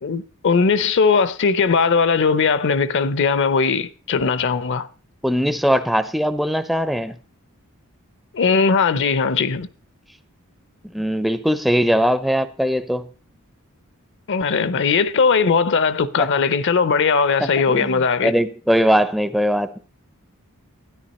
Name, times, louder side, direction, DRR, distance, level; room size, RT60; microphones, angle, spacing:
voice 1, 0.0-4.9 8.3-9.7 14.3-18.3, left 5 dB, 55° left, 0.6 m, -19 dB
voice 2, 5.2-7.2 10.9-13.1 16.2-16.3 17.7-19.8, equal, ahead, 0.5 m, -20 dB
13.0 x 10.0 x 4.1 m
head